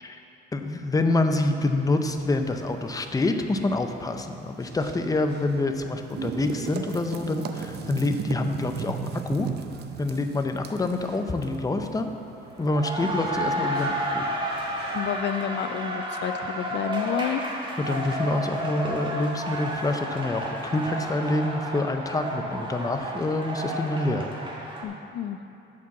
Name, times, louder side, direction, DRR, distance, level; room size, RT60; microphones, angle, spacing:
voice 1, 0.5-9.5 10.0-12.1 12.6-14.3 17.8-24.3, left 2 dB, 20° left, 6 dB, 0.6 m, -27 dB
sound 1, 2.0-15.2, right 6 dB, 55° right, 0.6 m, -38 dB
sound 2, 12.5-24.8, right 1 dB, 25° right, 1.4 m, -31 dB
voice 2, 14.9-17.4 24.8-25.4, left 9 dB, 60° left, 8 dB, 0.4 m, -30 dB
8.4 x 4.5 x 7.1 m, 2.8 s
cardioid pair, 90°, 20 cm